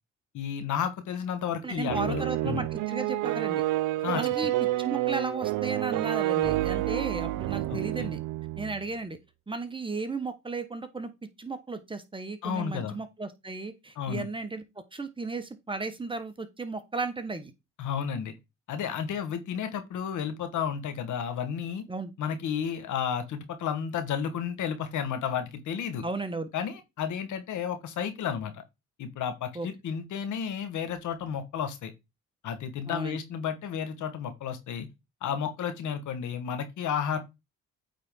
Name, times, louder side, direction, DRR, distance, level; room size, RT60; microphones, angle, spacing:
voice 1, 0.3-2.6 4.0-4.2 7.7-8.1 12.4-13.0 14.0-14.2 17.8-18.3 18.7-21.8 22.2-26.0 26.5-28.6 29.0-31.9 32.4-34.9 35.2-37.2, left 8 dB, 75° left, 1.6 m, -32 dB
voice 2, 1.6-3.6 4.1-4.5 4.8-8.2 8.6-9.2 9.5-11.1 11.4-17.5 21.9-22.1 26.0-26.5 29.5-29.7 32.9-33.2, right 3 dB, 15° right, 1.2 m, -35 dB
sound 1, 1.9-8.8, right 15 dB, 85° right, 0.6 m, -29 dB
8.6 x 4.1 x 3.7 m
cardioid pair, 90°, 30 cm